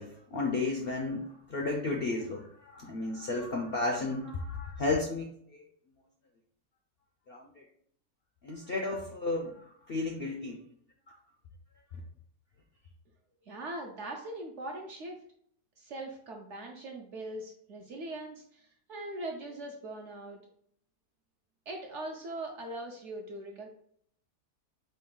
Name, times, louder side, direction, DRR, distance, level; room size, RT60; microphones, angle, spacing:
voice 1, 0.0-5.6 7.3-7.6 8.4-9.5 9.9-10.6, left 3 dB, 65° left, 1 dB, 0.5 m, -33 dB
voice 2, 13.5-15.2 15.8-18.6 18.9-20.4 21.7-23.7, right 1 dB, 60° right, 2 dB, 0.8 m, -41 dB
5.2 x 2.3 x 3.7 m, 0.63 s
omnidirectional pair, 1.7 m